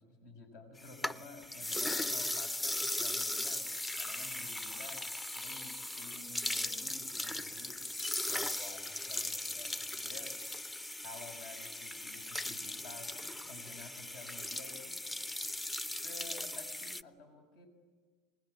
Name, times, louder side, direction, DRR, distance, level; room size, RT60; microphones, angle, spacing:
voice 1, 0.0-5.1 5.4-7.8 8.3-10.4 11.0-15.0 15.9-17.7, left 3 dB, 70° left, 5 dB, 6.3 m, -52 dB
sound 1, 0.8-17.0, left 1 dB, 15° left, 0.7 m, -38 dB
26.0 x 21.0 x 9.8 m, 1.5 s
hypercardioid pair, 85°, 0 cm